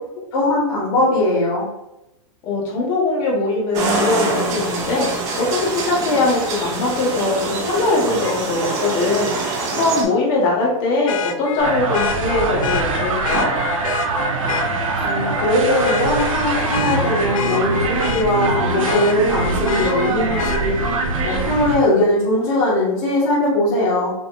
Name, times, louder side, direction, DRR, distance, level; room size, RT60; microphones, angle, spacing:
voice 1, 0.3-1.6 15.0-20.7 21.2-24.1, left 1 dB, 50° left, -9 dB, 1.7 m, -19 dB
voice 2, 2.4-5.1 5.4-13.5, left 3 dB, 25° left, -3 dB, 1.2 m, -21 dB
sound 1, 3.7-10.0, right 3 dB, 20° right, 0.6 m, -24 dB
Vehicle horn car horn honking, 8.2-8.3 11.1-14.7 15.2-15.5 15.8-18.4 18.8-20.6 22.4-22.5, left 7 dB, 70° left, 0.5 m, -27 dB
sound 2, 11.6-21.8, right 3 dB, 75° right, 1.2 m, -23 dB
5.8 x 3.6 x 2.5 m, 0.90 s
supercardioid pair, 170°, 18 cm